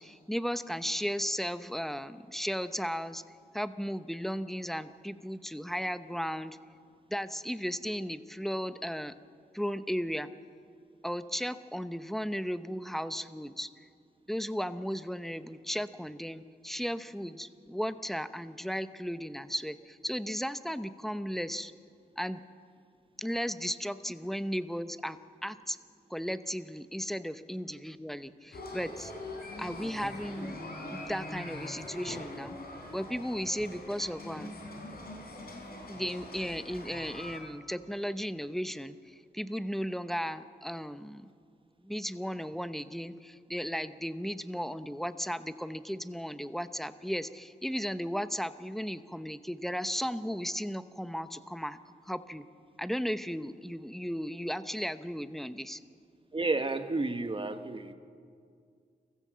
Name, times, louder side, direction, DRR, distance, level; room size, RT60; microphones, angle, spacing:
voice 1, 0.0-3.2 3.5-6.6 7.1-9.1 9.5-10.3 11.0-13.7 14.3-21.7 22.2-22.4 23.2-25.8 26.1-29.1 29.6-30.5 30.9-32.6 32.9-34.5 35.9-41.3 41.8-51.8 52.1-52.4 52.8-55.8, equal, ahead, 12 dB, 0.9 m, -35 dB
sound 1, 28.5-37.4, left 1 dB, 70° left, 3.9 m, -43 dB
voice 2, 56.3-57.9, right 2 dB, 30° right, 8 dB, 1.4 m, -31 dB
23.5 x 15.0 x 7.6 m, 2.2 s
cardioid pair, 60°, 17 cm